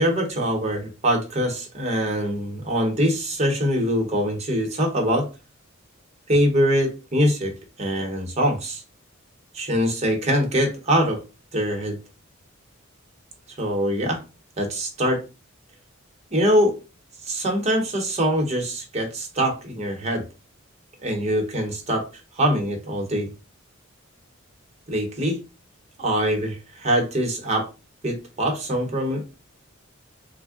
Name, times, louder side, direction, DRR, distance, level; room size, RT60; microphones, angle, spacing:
voice 1, 0.0-5.3 6.3-8.8 9.5-11.2 11.5-12.0 13.6-14.2 14.6-15.2 16.3-16.7 17.2-20.2 21.0-22.1 22.3-23.3 24.9-25.4 26.0-27.7 28.0-29.3, equal, 30° right, 0.9 m, -23 dB
3.5 x 2.2 x 3.5 m
head